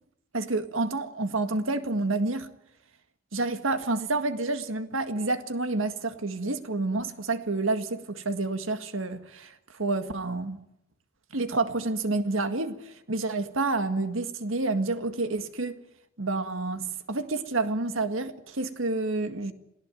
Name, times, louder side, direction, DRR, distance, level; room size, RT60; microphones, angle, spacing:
voice 1, 0.3-2.5 3.3-10.6 11.3-15.8 16.2-19.5, right 3 dB, 75° right, 1.9 m, -29 dB
27.0 x 17.5 x 9.2 m
head